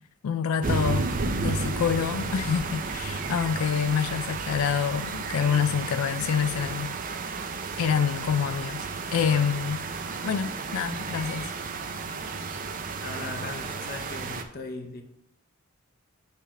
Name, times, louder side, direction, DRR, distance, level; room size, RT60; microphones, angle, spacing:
voice 1, 0.2-7.0 7.8-9.8 10.2-11.5, left 7 dB, 80° left, 0.4 m, -27 dB
sound 1, 0.6-14.4, right 4 dB, 40° right, 0.5 m, -32 dB
voice 2, 13.0-15.0, left 3 dB, 45° left, 0.6 m, -38 dB
6.7 x 3.4 x 6.0 m
head